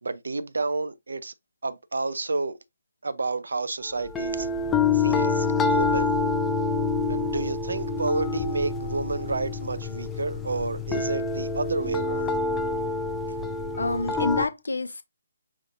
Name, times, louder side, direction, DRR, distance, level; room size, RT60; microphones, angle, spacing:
voice 1, 0.0-1.3 1.6-2.6 3.0-4.5 4.9-6.1 7.1-12.4, right 3 dB, 65° right, 0.5 m, -30 dB
sound 1, 4.1-14.5, left 4 dB, 10° left, 0.5 m, -27 dB
voice 2, 13.8-15.0, left 2 dB, 70° left, 0.6 m, -27 dB
5.3 x 3.5 x 2.6 m
figure-of-eight pair, 140°, 0 cm